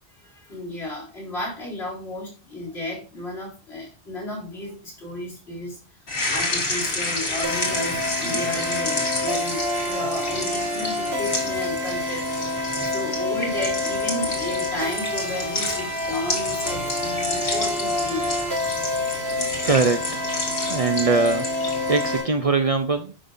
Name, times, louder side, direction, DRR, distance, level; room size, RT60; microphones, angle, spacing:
voice 1, 0.2-5.8 6.3-12.3 12.8-18.8, left 1 dB, 85° left, -3 dB, 3.9 m, -33 dB
sound 1, 6.1-22.2, left 2 dB, 65° left, 1.8 m, -30 dB
sound 2, 7.4-22.3, left 2 dB, 75° right, 2.1 m, -27 dB
voice 2, 19.3-20.2 20.7-21.5 21.9-23.1, right 4 dB, 45° right, 8 dB, 0.5 m, -22 dB
10.0 x 5.3 x 2.5 m, 0.32 s
omnidirectional pair, 1.1 m